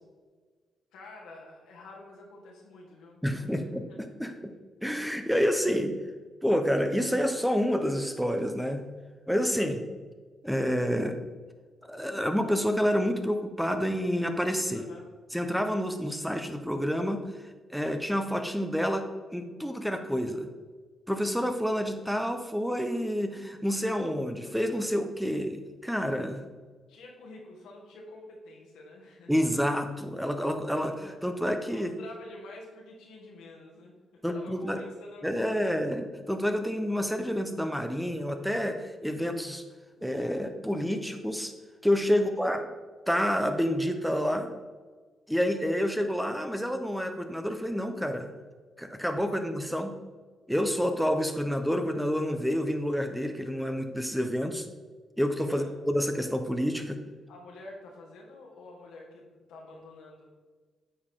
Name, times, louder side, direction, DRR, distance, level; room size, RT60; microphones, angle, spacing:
voice 1, 0.9-3.2 3.5-3.9 4.3-4.4 14.7-15.1 26.9-29.3 31.7-34.0 34.3-35.8 42.1-42.5 55.5-55.7 57.3-60.3, left 2 dB, 85° left, -2 dB, 1.6 m, -48 dB
voice 2, 3.2-3.9 4.2-4.5 4.8-5.9 6.4-8.8 9.3-9.8 10.4-11.2 11.8-14.8 15.3-17.2 17.7-19.0 19.3-20.5 21.1-26.4 29.3-31.9 34.2-34.8 35.2-39.6 40.0-41.5 41.8-42.7 43.1-44.5 45.3-48.3 48.8-49.9 50.5-54.7 55.2-57.0, equal, ahead, 6 dB, 0.8 m, -28 dB
8.7 x 4.7 x 3.7 m, 1.4 s
supercardioid pair, 60°, 0 cm